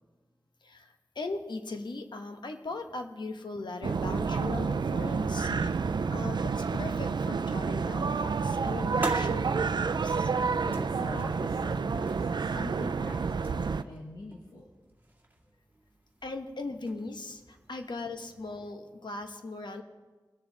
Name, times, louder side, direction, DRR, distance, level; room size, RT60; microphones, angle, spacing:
voice 1, 0.6-5.5 6.1-10.3 16.2-19.8, left 3 dB, 80° left, 6 dB, 1.0 m, -39 dB
sound 1, 3.8-13.8, right 5 dB, 75° right, 0.4 m, -29 dB
sound 2, 8.9-18.7, right 2 dB, 25° right, 1.9 m, -45 dB
voice 2, 10.2-14.7 19.0-19.1, left 2 dB, 60° left, -1 dB, 1.4 m, -43 dB
21.5 x 7.1 x 4.0 m, 1.3 s
wide cardioid pair, 80°, 8 cm